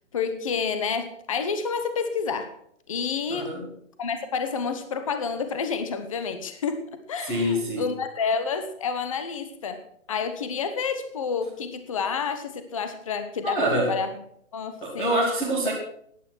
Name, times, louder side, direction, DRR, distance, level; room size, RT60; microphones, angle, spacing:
voice 1, 0.1-2.5 2.9-3.5 4.0-6.8 7.1-14.2 14.5-15.1, left 5 dB, 25° left, 9 dB, 1.0 m, -29 dB
voice 2, 3.3-3.7 7.2-7.9 13.4-13.9 14.8-15.7, right 1 dB, 5° left, -6 dB, 0.8 m, -25 dB
15.0 x 9.9 x 6.1 m, 0.67 s
hypercardioid pair, 170°, 40 cm